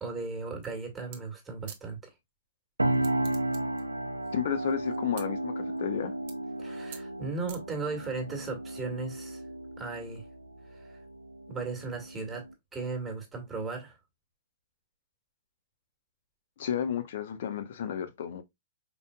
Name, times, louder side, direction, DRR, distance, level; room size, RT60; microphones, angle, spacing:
voice 1, 0.0-2.1 6.6-9.4 9.8-10.2 10.7-11.0 11.5-12.5 12.7-14.0, right 4 dB, 10° right, 1.8 m, -36 dB
sound 1, 0.6-0.8 1.1-1.2 1.7-1.8 2.9-3.8 4.2-5.2 5.8-6.0 6.3-6.6 6.9-7.0 7.5-8.1, right 9 dB, 45° right, 1.2 m, -46 dB
sound 2, 2.8-12.5, right 1 dB, 90° right, 0.5 m, -34 dB
voice 2, 4.3-6.1 16.6-18.4, left 8 dB, 55° left, 1.0 m, -32 dB
5.3 x 4.0 x 2.4 m
figure-of-eight pair, 110°, 0 cm